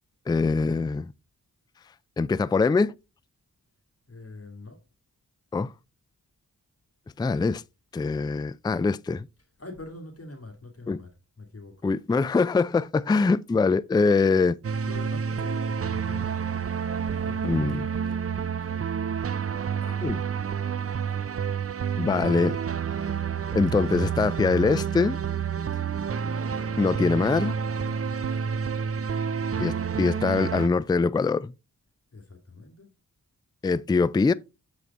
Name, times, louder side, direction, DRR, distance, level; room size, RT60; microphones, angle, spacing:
voice 1, 0.3-1.1 2.2-2.9 5.5-5.7 7.2-7.6 7.9-9.3 10.9-11.0 11.8-14.6 17.4-17.9 19.8-20.2 22.0-22.6 23.5-25.2 26.8-27.6 29.6-31.5 33.6-34.3, left 4 dB, 10° left, 0.3 m, -23 dB
voice 2, 4.1-4.8 9.6-11.1 11.4-11.8 14.8-16.4 17.1-17.5 27.8-28.5 32.1-32.9, left 2 dB, 40° left, 2.1 m, -44 dB
sound 1, 14.6-30.7, right 7 dB, 40° right, 0.6 m, -29 dB
7.3 x 4.8 x 4.0 m
cardioid pair, 45°, 36 cm